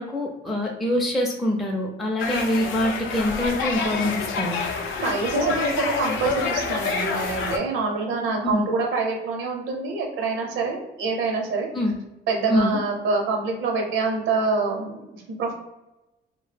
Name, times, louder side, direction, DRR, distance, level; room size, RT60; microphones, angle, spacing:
voice 1, 0.0-4.6 8.4-8.6 11.7-12.0 12.5-12.8, left 1 dB, ahead, -1 dB, 0.4 m, -24 dB
sound 1, 2.2-7.6, left 4 dB, 80° left, 0.4 m, -27 dB
voice 2, 5.0-11.7 12.3-15.5, right 4 dB, 90° right, 1 dB, 0.6 m, -26 dB
2.1 x 2.1 x 3.2 m, 0.97 s
cardioid pair, 90°, 20 cm